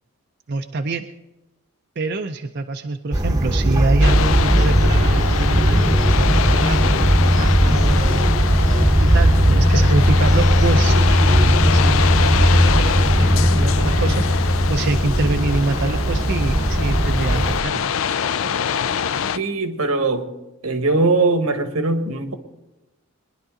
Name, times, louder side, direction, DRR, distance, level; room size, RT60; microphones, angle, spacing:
voice 1, 0.5-1.0 2.0-8.3 9.0-17.8, right 3 dB, 50° right, 5 dB, 0.5 m, -26 dB
sound 1, 3.1-17.6, equal, 15° right, 0.8 m, -17 dB
sound 2, 4.0-19.4, left 7 dB, 70° left, 0.4 m, -25 dB
voice 2, 19.3-20.3 20.6-22.3, right 3 dB, 90° right, 8 dB, 1.4 m, -20 dB
22.0 x 11.0 x 3.8 m, 1.0 s
head